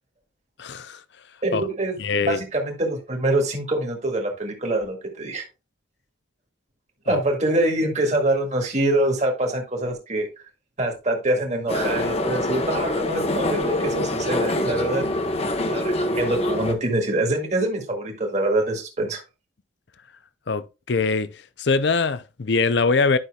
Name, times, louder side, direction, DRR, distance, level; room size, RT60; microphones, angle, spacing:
voice 1, 0.6-1.0 1.5-1.6 2.0-2.4 7.1-7.2 20.5-21.3 21.6-23.2, left 4 dB, 60° left, 0.6 m, -22 dB
voice 2, 1.4-5.4 7.1-10.3 10.8-15.1 15.6-19.2, right 1 dB, 35° right, 1.8 m, -25 dB
sound 1, 11.7-16.7, left 1 dB, 30° left, 0.9 m, -25 dB
11.0 x 5.8 x 2.3 m
head